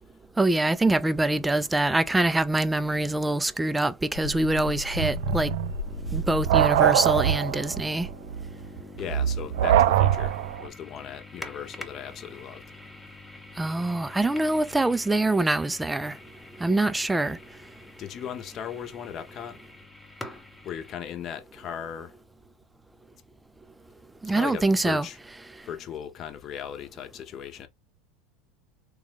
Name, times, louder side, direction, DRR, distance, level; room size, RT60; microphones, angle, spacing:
voice 1, 0.4-5.5 6.1-8.1 13.6-16.1 16.6-17.4 24.2-25.1, right 2 dB, 10° right, 0.4 m, -24 dB
sound 1, 4.1-7.0, left 4 dB, 80° left, 0.5 m, -35 dB
sound 2, 4.9-10.7, right 11 dB, 80° right, 0.4 m, -23 dB
sound 3, 5.9-21.0, left 2 dB, 5° left, 0.9 m, -46 dB
voice 2, 9.0-12.6 18.0-19.6 20.6-22.1 24.2-25.2 25.6-27.7, left 9 dB, 45° left, 0.8 m, -37 dB
3.5 x 2.4 x 3.4 m
supercardioid pair, 105°, 0 cm